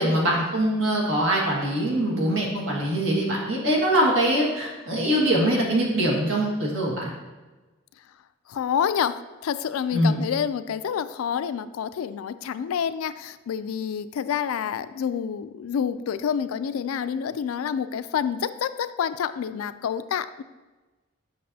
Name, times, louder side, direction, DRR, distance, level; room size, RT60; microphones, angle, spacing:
voice 1, 0.0-7.1 9.9-10.2, right 1 dB, 65° right, -3 dB, 1.7 m, -23 dB
voice 2, 8.5-20.4, left 8 dB, 85° left, 13 dB, 0.3 m, -28 dB
8.4 x 5.9 x 2.7 m, 1.2 s
head